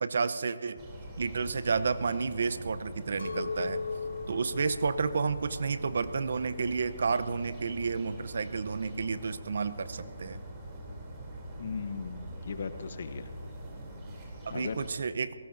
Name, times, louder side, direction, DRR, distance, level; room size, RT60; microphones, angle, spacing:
voice 1, 0.0-0.8 1.2-3.8 4.3-10.4 14.4-15.3, right 5 dB, 60° right, 13 dB, 0.7 m, -31 dB
sound 1, 0.8-14.9, right 1 dB, 20° right, 3.0 m, -44 dB
Chink clink, 3.2-8.4, left 4 dB, 75° left, 0.3 m, -39 dB
voice 2, 11.6-13.3 14.5-14.9, left 5 dB, 55° left, 10 dB, 0.8 m, -37 dB
28.5 x 18.5 x 2.7 m, 2.5 s
hypercardioid pair, 160°, 0 cm